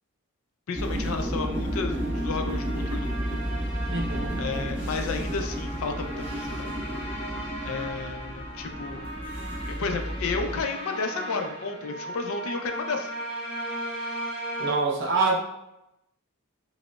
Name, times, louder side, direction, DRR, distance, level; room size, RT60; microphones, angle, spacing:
voice 1, 0.7-3.4 4.4-6.7 7.6-9.1 9.7-13.1, left 4 dB, 65° left, 5 dB, 0.4 m, -32 dB
sound 1, 0.7-10.6, equal, 5° right, 0.6 m, -32 dB
sound 2, 1.4-14.7, right 1 dB, 25° left, 0.9 m, -37 dB
voice 2, 3.9-4.4 14.6-15.4, right 3 dB, 50° right, -1 dB, 0.6 m, -25 dB
4.9 x 2.0 x 2.2 m, 0.87 s
head